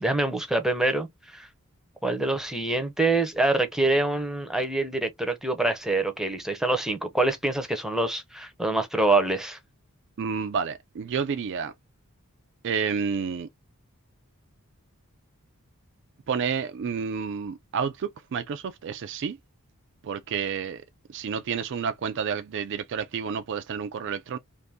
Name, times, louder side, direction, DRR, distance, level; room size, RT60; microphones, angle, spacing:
voice 1, 0.0-1.5 2.0-9.6, right 2 dB, ahead, 0.6 m, -25 dB
voice 2, 10.2-11.7 12.6-13.5 16.3-19.4 20.0-20.8 21.1-24.4, right 6 dB, 55° right, 0.4 m, -30 dB
2.6 x 2.6 x 3.4 m
head